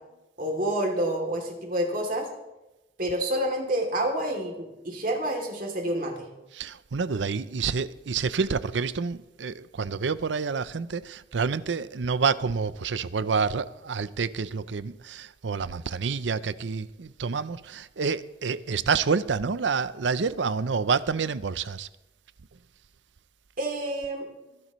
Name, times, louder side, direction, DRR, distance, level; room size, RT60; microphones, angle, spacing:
voice 1, 0.4-2.3 3.0-6.3 23.6-24.3, right 1 dB, 50° right, 2.9 m, -28 dB
voice 2, 6.5-21.9, right 5 dB, 90° right, 0.6 m, -28 dB
23.0 x 11.0 x 3.1 m
head